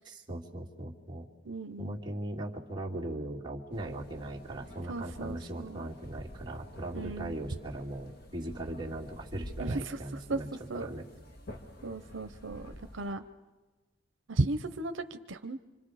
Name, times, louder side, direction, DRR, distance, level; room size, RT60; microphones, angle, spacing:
voice 1, 0.1-1.2 1.8-10.5 10.7-11.1, right 1 dB, 25° right, -3 dB, 2.4 m, -39 dB
voice 2, 1.4-2.0 4.9-5.8 6.9-7.4 9.6-10.0 10.3-10.4 10.7-10.9 11.8-13.2 14.3-15.6, right 2 dB, 80° right, 9 dB, 0.8 m, -35 dB
sound 1, 3.7-13.1, equal, 55° left, 1.9 m, -49 dB
27.0 x 25.5 x 5.0 m, 1.2 s
head